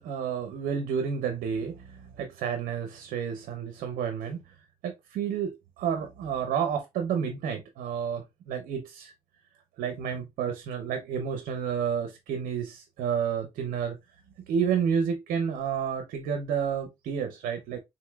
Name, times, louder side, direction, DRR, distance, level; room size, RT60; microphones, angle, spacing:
voice 1, 0.0-4.5 4.8-9.1 9.8-14.0 14.5-17.8, right 7 dB, 85° right, 0.6 m, -30 dB
3.8 x 2.9 x 2.2 m
cardioid pair, 85°, 14 cm